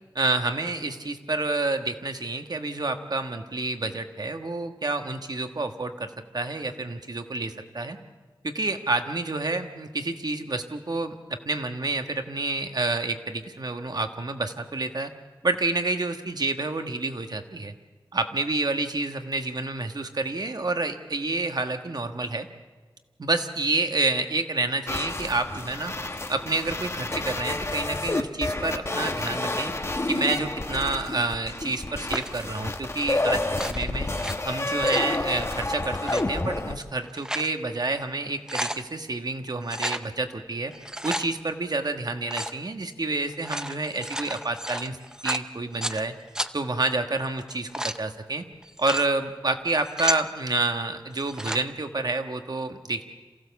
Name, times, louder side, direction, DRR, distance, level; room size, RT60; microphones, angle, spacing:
voice 1, 0.1-8.0 8.4-11.2 11.4-15.1 15.4-17.7 18.1-22.5 23.2-25.9 26.3-29.7 30.1-34.1 34.5-40.7 41.0-45.0 45.2-46.1 46.5-48.4 48.8-53.0, right 2 dB, 55° right, 6 dB, 1.4 m, -29 dB
sound 1, 24.9-36.8, left 2 dB, 35° left, 1.1 m, -29 dB
sound 2, 32.1-32.4 33.4-34.3 34.7-35.1 35.9-36.2 36.9-37.5 38.0-38.1 38.3-38.8 39.7-40.0 40.7-41.3 42.3-42.6 43.3-46.0 46.4-46.5 47.4-48.0 48.6-49.1 49.7-50.3 51.2-51.6, right 1 dB, 10° right, 0.7 m, -32 dB
27.5 x 15.5 x 7.0 m, 1.4 s
wide cardioid pair, 85°, 8 cm